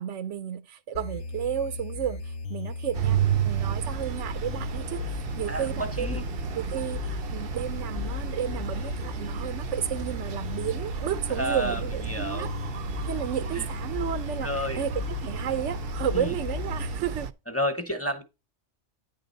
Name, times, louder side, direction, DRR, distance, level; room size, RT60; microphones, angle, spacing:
voice 1, 0.0-2.2 2.5-5.0 5.4-6.2 6.5-12.5 13.1-17.3, right 9 dB, 90° right, 1.0 m, -32 dB
sound 1, 0.9-16.9, left 4 dB, 80° left, 0.9 m, -36 dB
sound 2, 2.9-17.3, right 8 dB, 60° right, 0.7 m, -33 dB
voice 2, 5.5-6.2 11.3-12.5 13.6-13.7 14.4-14.8 16.1-16.3 17.5-18.2, equal, 15° left, 0.9 m, -31 dB
9.7 x 3.8 x 5.3 m
omnidirectional pair, 1.2 m